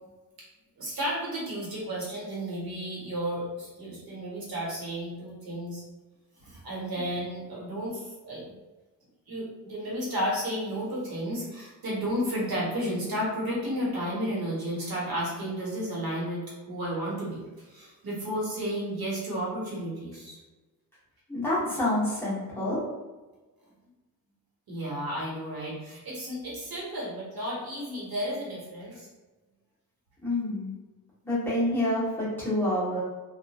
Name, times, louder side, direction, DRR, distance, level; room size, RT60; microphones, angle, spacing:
voice 1, 0.8-5.8 6.4-8.5 9.3-20.4 24.7-29.1, equal, 80° right, -5 dB, 1.2 m, -32 dB
voice 2, 21.3-22.8 30.2-30.7 31.2-33.0, left 1 dB, 5° left, -10 dB, 1.0 m, -27 dB
2.9 x 2.5 x 2.3 m, 1.2 s
wide cardioid pair, 170°, 36 cm